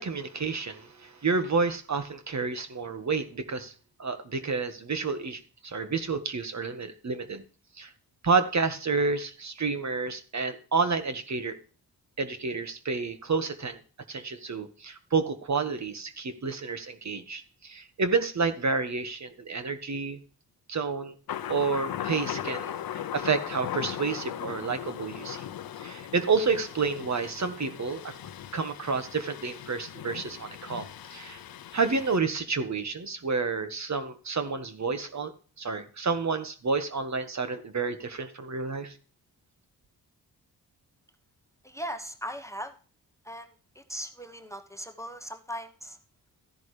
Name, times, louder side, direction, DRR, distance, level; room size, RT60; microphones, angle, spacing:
voice 1, 0.0-3.7 4.0-7.4 7.8-7.9 8.2-11.6 12.2-13.8 14.1-20.2 20.7-21.1 21.5-25.4 25.8-28.1 28.5-30.8 31.1-31.4 31.7-35.3 35.6-39.0, right 4 dB, 45° right, 9 dB, 1.6 m, -30 dB
Thunder, 21.3-32.2, left 10 dB, 65° left, 0.8 m, -38 dB
voice 2, 41.6-42.7 43.2-43.5 43.7-46.0, equal, 10° left, 7 dB, 1.2 m, -38 dB
14.0 x 10.5 x 3.3 m, 0.38 s
cardioid pair, 60°, 38 cm